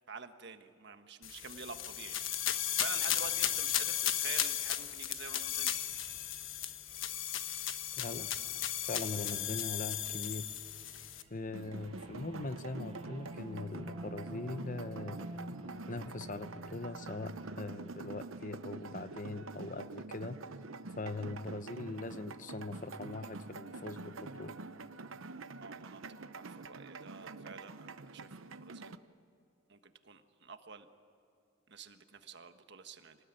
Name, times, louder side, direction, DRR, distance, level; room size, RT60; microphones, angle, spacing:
voice 1, 0.1-2.4 2.8-5.8 25.6-29.0 29.7-30.9 31.7-33.2, right 5 dB, 60° right, 8 dB, 1.4 m, -48 dB
sound 1, 1.2-11.2, left 11 dB, 75° left, 1.2 m, -35 dB
sound 2, 2.8-4.1 5.3-7.8 8.2-8.5 8.9-19.2, right 1 dB, 30° right, 5.7 m, -52 dB
voice 2, 8.0-10.5 11.3-15.3 15.9-20.4 21.0-24.5, left 2 dB, 40° left, 12 dB, 0.9 m, -41 dB
sound 3, 11.5-29.0, right 3 dB, 85° right, 0.8 m, -46 dB
26.5 x 19.5 x 9.1 m, 2.7 s
head